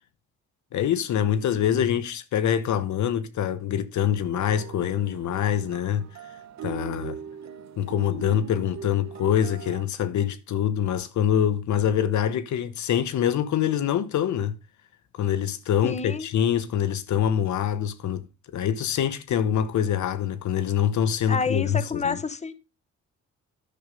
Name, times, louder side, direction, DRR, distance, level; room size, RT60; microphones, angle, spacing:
voice 1, 0.7-6.0 6.6-7.2 7.8-14.6 15.1-18.3 18.5-22.2, left 9 dB, 70° left, 1.1 m, -25 dB
sound 1, 4.3-9.8, right 8 dB, 65° right, 1.1 m, -41 dB
voice 2, 15.8-16.3 21.3-22.5, left 5 dB, 20° left, 1.1 m, -28 dB
10.5 x 7.1 x 5.3 m
cardioid pair, 90°, 30 cm